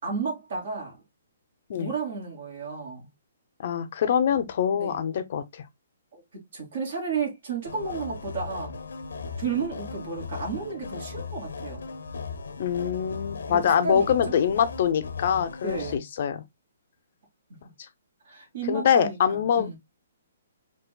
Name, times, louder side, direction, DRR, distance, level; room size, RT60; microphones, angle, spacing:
voice 1, 0.0-1.0 1.7-3.1 4.7-5.0 6.1-6.2 6.5-8.7 9.4-11.8 13.5-14.1 15.6-16.0 18.3-19.8, right 5 dB, 50° right, 2.9 m, -32 dB
voice 2, 3.6-5.6 12.6-16.4 18.7-19.7, left 8 dB, 45° left, 0.6 m, -24 dB
sound 1, 7.7-16.0, left 4 dB, 85° left, 0.8 m, -37 dB
5.8 x 3.0 x 2.2 m
hypercardioid pair, 170°, 0 cm